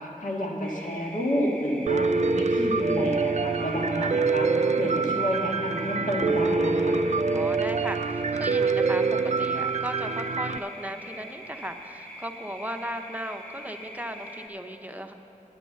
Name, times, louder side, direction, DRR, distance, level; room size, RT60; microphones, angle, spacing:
voice 1, 0.0-4.5 4.8-7.0, equal, 70° left, -2 dB, 1.8 m, -30 dB
sound 1, 0.6-14.5, equal, 10° left, 1.4 m, -43 dB
Piano, 1.9-10.6, right 4 dB, 55° right, 0.4 m, -25 dB
voice 2, 7.3-15.1, equal, 10° right, 5 dB, 0.8 m, -36 dB
9.9 x 9.8 x 7.1 m, 2.9 s
wide cardioid pair, 50°, 14 cm